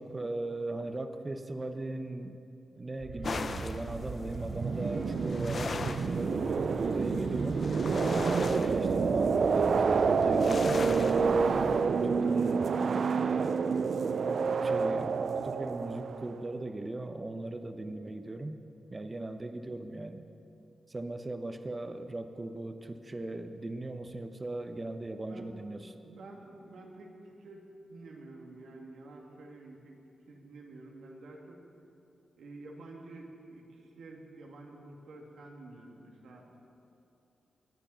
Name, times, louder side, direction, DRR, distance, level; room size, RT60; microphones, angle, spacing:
voice 1, 0.0-2.4 2.8-7.6 8.0-13.6 14.2-18.6 18.9-20.2 20.9-25.9, right 2 dB, 30° right, 8 dB, 0.9 m, -38 dB
sound 1, 3.0-16.4, right 5 dB, 65° right, 0.5 m, -29 dB
sound 2, 3.2-11.8, left 4 dB, 55° left, 0.8 m, -39 dB
voice 2, 25.3-30.0 30.3-31.6 32.4-36.6, right 2 dB, 85° right, 0 dB, 2.3 m, -49 dB
23.0 x 9.9 x 5.7 m, 2.8 s
cardioid pair, 65°, 0 cm